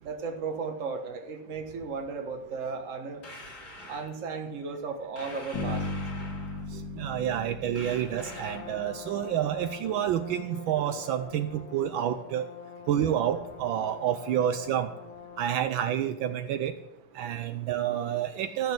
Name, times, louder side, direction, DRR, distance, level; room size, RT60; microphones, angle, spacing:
voice 1, 0.0-3.2 3.9-5.9, right 4 dB, 40° right, 5 dB, 1.5 m, -35 dB
sound 1, 3.2-4.1 5.2-6.7 7.7-8.8, left 2 dB, 40° left, 2.5 m, -45 dB
Bass guitar, 5.5-9.3, left 2 dB, 65° left, 3.1 m, -37 dB
voice 2, 7.0-12.5 12.9-14.9 15.4-16.7 17.2-18.7, right 10 dB, 75° right, 9 dB, 1.4 m, -29 dB
Brass instrument, 7.9-15.7, left 8 dB, 85° left, 1.9 m, -46 dB
13.5 x 6.6 x 7.9 m, 0.92 s
omnidirectional pair, 2.3 m